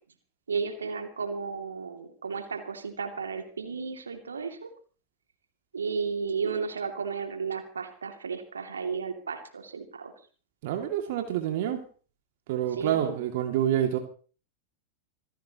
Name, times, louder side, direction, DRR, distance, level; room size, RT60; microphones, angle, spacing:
voice 1, 0.5-4.7 5.7-10.1 12.7-13.2, right 5 dB, 70° right, 5 dB, 2.6 m, -33 dB
voice 2, 10.6-11.8 12.5-14.0, right 11 dB, 50° right, 4 dB, 2.4 m, -27 dB
26.5 x 15.5 x 3.0 m, 0.40 s
figure-of-eight pair, 90°, 0 cm